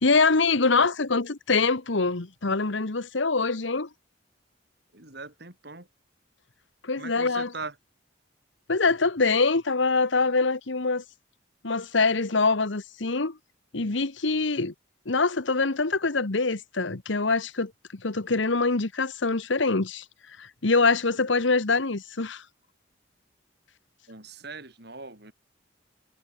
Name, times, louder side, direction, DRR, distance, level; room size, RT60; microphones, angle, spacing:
voice 1, 0.0-3.9 6.8-7.5 8.7-11.0 11.6-13.4 13.7-14.7 15.0-20.0 20.4-22.4, left 3 dB, 75° left, 1.3 m, -24 dB
voice 2, 4.9-5.9 7.0-7.7 24.1-25.3, right 4 dB, 55° right, 4.6 m, -40 dB
head